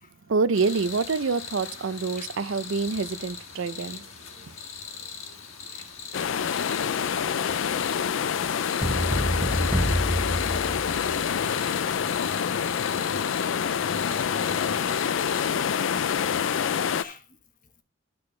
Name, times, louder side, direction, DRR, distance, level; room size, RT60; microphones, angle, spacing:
voice 1, 0.3-4.1 4.4-4.5, right 4 dB, 70° right, 0.5 m, -26 dB
sound 1, 0.5-15.5, left 6 dB, 90° left, 1.5 m, -41 dB
sound 2, 6.1-17.0, left 7 dB, 70° left, 0.4 m, -26 dB
sound 3, 8.8-11.3, equal, 10° right, 0.8 m, -27 dB
voice 2, 8.9-14.8 15.4-15.5 16.6-17.2, left 1 dB, 40° left, 1.3 m, -46 dB
12.0 x 6.2 x 3.2 m
head